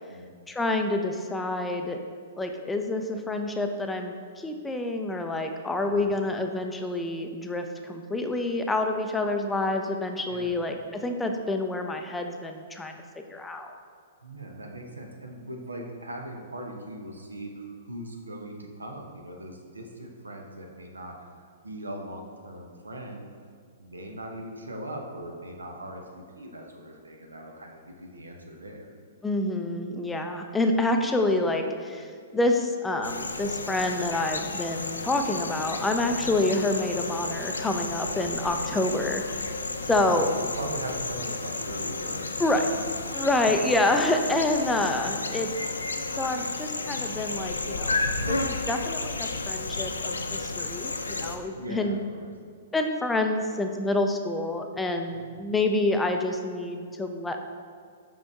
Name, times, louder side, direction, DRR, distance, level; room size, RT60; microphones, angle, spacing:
voice 1, 0.5-2.0 2.4-13.0 13.3-13.7 29.2-39.2 39.8-40.3 42.4-42.7 43.1-45.5 46.1-52.0 52.7-57.4, left 2 dB, 10° left, 5 dB, 0.4 m, -27 dB
voice 2, 10.3-10.6 14.2-23.3 23.8-28.9 39.8-42.7 43.1-43.3 51.5-52.3 55.3-55.5, right 1 dB, 85° right, 2 dB, 0.8 m, -40 dB
sound 1, 33.0-51.4, left 3 dB, 85° left, 0.4 m, -32 dB
5.4 x 5.1 x 3.6 m, 2.1 s
figure-of-eight pair, 110°, 0 cm